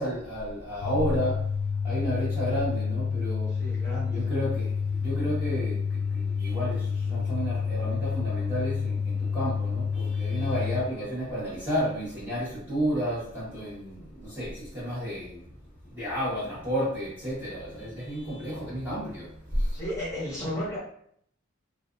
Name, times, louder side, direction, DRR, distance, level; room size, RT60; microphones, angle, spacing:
voice 1, 0.0-1.4 1.8-3.5 4.1-4.7 5.0-5.8 6.1-15.4 15.9-19.3, equal, 10° right, -10 dB, 1.0 m, -31 dB
sound 1, 0.8-10.8, left 6 dB, 60° left, 0.3 m, -29 dB
voice 2, 3.6-4.3 19.7-20.8, equal, 15° left, -9 dB, 1.1 m, -33 dB
2.5 x 2.3 x 2.4 m, 0.65 s
head